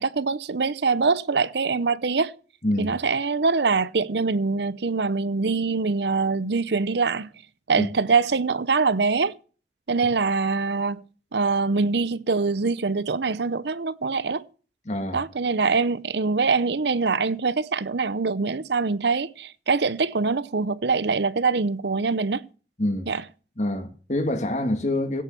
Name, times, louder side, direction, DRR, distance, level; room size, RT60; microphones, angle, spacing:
voice 1, 0.0-2.3 2.8-7.3 7.7-9.3 9.9-11.0 11.3-14.4 15.1-22.4 23.1-23.2, right 4 dB, 75° right, 0.7 m, -24 dB
voice 2, 2.6-3.0 7.8-7.9 14.9-15.2 22.8-23.1 23.6-25.2, left 1 dB, 40° left, 2.2 m, -26 dB
16.5 x 6.4 x 6.9 m
head